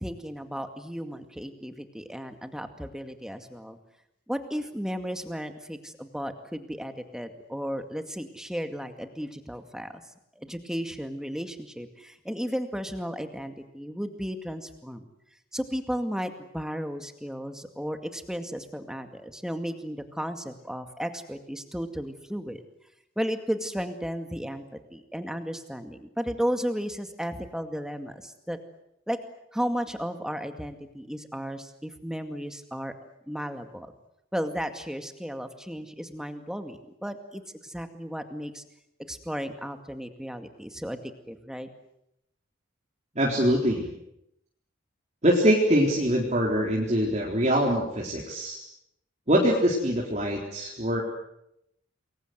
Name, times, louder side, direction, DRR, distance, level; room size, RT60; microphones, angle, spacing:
voice 1, 0.0-3.8 4.3-9.9 10.3-15.0 15.5-22.6 23.2-28.6 29.1-29.2 29.5-32.9 33.3-33.9 34.3-38.6 39.1-41.0 41.3-41.7, equal, 5° right, 7 dB, 2.1 m, -34 dB
voice 2, 43.2-43.9 45.2-48.6 49.3-51.0, equal, 35° right, -2 dB, 4.0 m, -23 dB
28.0 x 22.0 x 8.1 m, 0.81 s
head